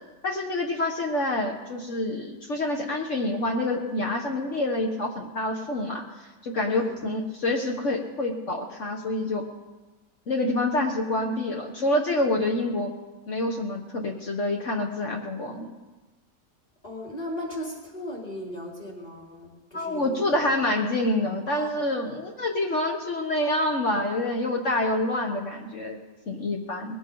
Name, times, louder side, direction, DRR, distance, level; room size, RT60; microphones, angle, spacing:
voice 1, 0.2-9.4 10.3-12.9 13.3-15.7 19.7-27.0, left 1 dB, 50° left, 1 dB, 1.5 m, -27 dB
voice 2, 6.7-7.0 16.8-20.5 21.5-21.8, left 1 dB, 25° left, -4 dB, 3.9 m, -37 dB
20.5 x 16.0 x 3.9 m, 1.2 s
omnidirectional pair, 1.6 m